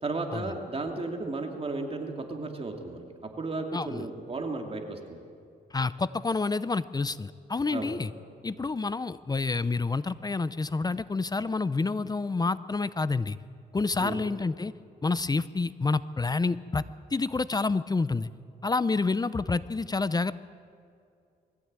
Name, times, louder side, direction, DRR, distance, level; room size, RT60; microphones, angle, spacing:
voice 1, 0.0-3.0 3.4-5.2 7.7-8.0 8.5-8.7 14.0-14.2, right 3 dB, 35° right, 3 dB, 2.8 m, -34 dB
voice 2, 3.7-4.1 5.7-8.1 8.4-13.4 13.7-14.7 15.0-16.8 17.1-18.3 18.6-20.3, left 3 dB, 25° left, 16 dB, 0.6 m, -28 dB
21.5 x 15.0 x 9.0 m, 2.4 s
cardioid pair, 85°, 17 cm